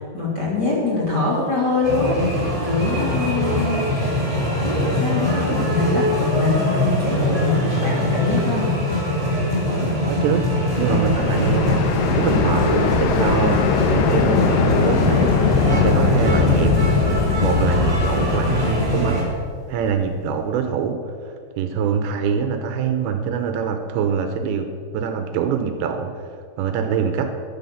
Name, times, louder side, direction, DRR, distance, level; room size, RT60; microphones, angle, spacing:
voice 1, 0.1-2.2 2.6-3.8 4.6-8.7, left 3 dB, 25° left, -5 dB, 3.0 m, -23 dB
sound 1, 1.8-19.2, left 1 dB, 10° right, 3.4 m, -22 dB
sound 2, 10.0-20.0, left 6 dB, 80° left, 3.3 m, -22 dB
voice 2, 10.0-10.5 10.8-11.9 12.1-13.6 13.9-15.4 15.7-16.7 17.4-19.3 19.7-24.7 24.9-26.3 26.6-27.3, right 7 dB, 75° right, 7 dB, 2.9 m, -24 dB
13.5 x 11.0 x 7.1 m, 2.3 s
omnidirectional pair, 5.4 m